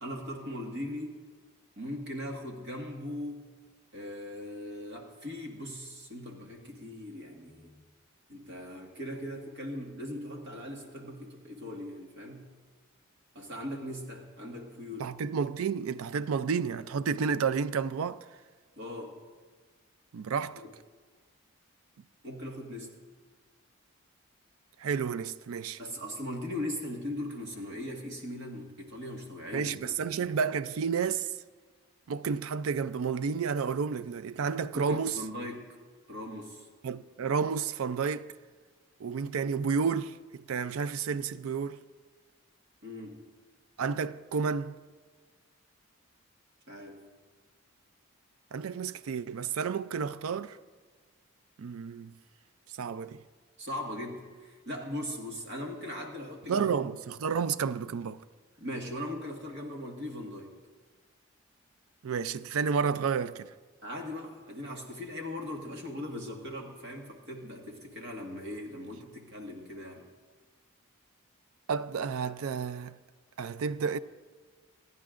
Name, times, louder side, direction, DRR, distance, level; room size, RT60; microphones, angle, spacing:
voice 1, 0.0-1.2 1.8-3.5 3.9-7.8 8.3-12.5 13.3-15.1 18.8-19.2 20.6-20.7 22.2-23.0 25.8-29.7 30.2-30.3 34.7-35.7 36.1-36.7 42.8-43.3 46.7-47.1 53.6-56.7 58.6-60.5 63.8-70.0, left 1 dB, 55° right, 1.7 m, -39 dB
voice 2, 15.0-18.2 20.1-20.6 24.8-25.8 29.5-31.3 32.1-35.2 36.8-38.3 39.0-41.8 43.8-44.7 48.5-50.6 51.6-52.1 52.8-53.2 56.5-58.2 62.0-63.5 71.7-73.0 73.4-74.0, right 6 dB, 80° right, 0.4 m, -31 dB
27.0 x 9.5 x 2.5 m
head